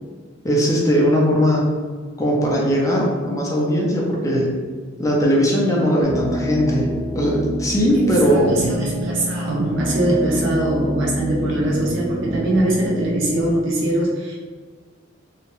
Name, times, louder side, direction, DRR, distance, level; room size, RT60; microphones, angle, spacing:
voice 1, 0.4-1.7 2.2-4.6 5.0-8.8, equal, 15° left, -3 dB, 0.5 m, -19 dB
sound 1, 6.0-13.4, right 1 dB, 50° right, 0.8 m, -27 dB
voice 2, 8.2-14.4, right 1 dB, 70° right, -3 dB, 0.5 m, -22 dB
2.8 x 2.2 x 3.0 m, 1.5 s
head